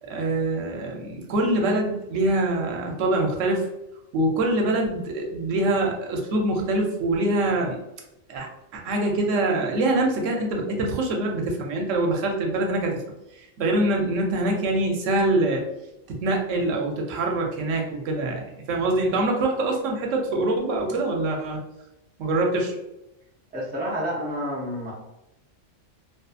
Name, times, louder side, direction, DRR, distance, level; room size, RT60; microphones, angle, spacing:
voice 1, 0.0-3.7 4.1-7.8 8.3-13.0 13.3-15.6 16.1-21.6 22.2-22.7, right 2 dB, 80° right, 1 dB, 1.0 m, -24 dB
voice 2, 23.5-24.9, equal, 10° right, -4 dB, 0.4 m, -29 dB
2.6 x 2.3 x 2.3 m, 0.89 s
omnidirectional pair, 1.3 m